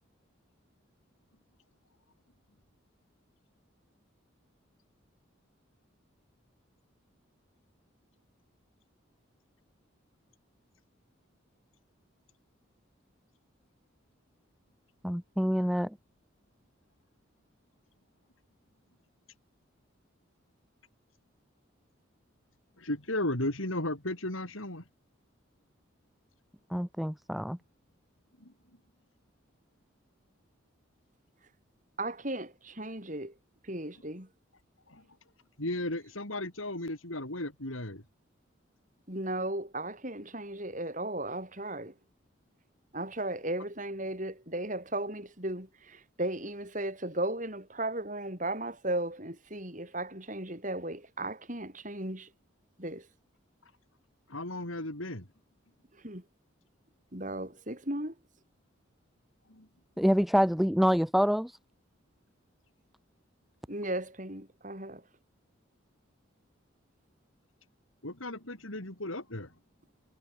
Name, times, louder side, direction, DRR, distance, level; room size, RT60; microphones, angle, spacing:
voice 1, 15.0-16.0 26.7-27.6 60.0-61.6, equal, ahead, 0.3 m, -26 dB
voice 2, 22.8-24.8 28.4-28.5 34.9-35.0 35.6-38.0 54.3-55.3 59.5-59.7 68.0-69.5, left 1 dB, 85° left, 5.9 m, -35 dB
voice 3, 32.0-33.3 33.6-34.3 39.1-41.9 42.9-52.3 52.8-53.1 56.0-56.2 57.1-58.1 63.7-65.0, right 1 dB, 40° right, 6.5 m, -36 dB
head